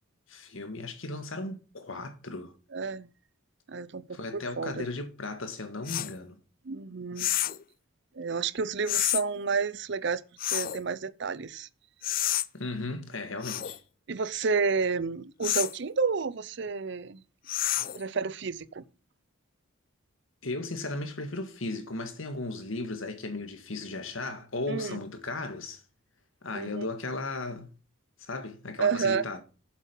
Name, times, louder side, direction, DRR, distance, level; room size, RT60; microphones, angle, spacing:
voice 1, 0.3-2.5 4.1-6.4 12.5-13.8 20.4-25.8 26.4-27.7 28.2-29.4, left 2 dB, 70° left, 1.8 m, -36 dB
voice 2, 2.7-3.1 3.7-4.9 6.6-7.3 8.1-10.2 10.5-11.7 14.1-17.2 17.9-18.8 24.7-25.0 26.5-26.9 28.8-29.2, right 5 dB, 55° right, 0.5 m, -30 dB
sound 1, 5.9-6.1 7.2-7.6 8.9-9.2 10.4-10.8 12.0-12.5 13.4-13.8 15.4-15.8 17.5-18.0, left 14 dB, 40° left, 0.4 m, -29 dB
8.4 x 7.6 x 5.5 m
head